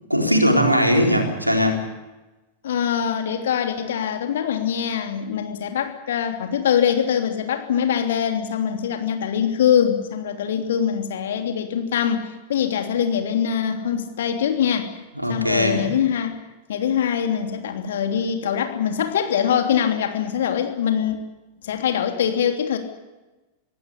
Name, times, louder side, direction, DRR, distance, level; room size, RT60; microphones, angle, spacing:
voice 1, 0.1-1.8 15.2-15.9, equal, 90° right, 3 dB, 4.1 m, -19 dB
voice 2, 2.6-14.9 15.3-16.4 16.7-21.2 21.6-22.8, left 8 dB, 60° left, 5 dB, 3.1 m, -23 dB
25.0 x 16.5 x 10.0 m, 1.1 s
figure-of-eight pair, 90°, 0 cm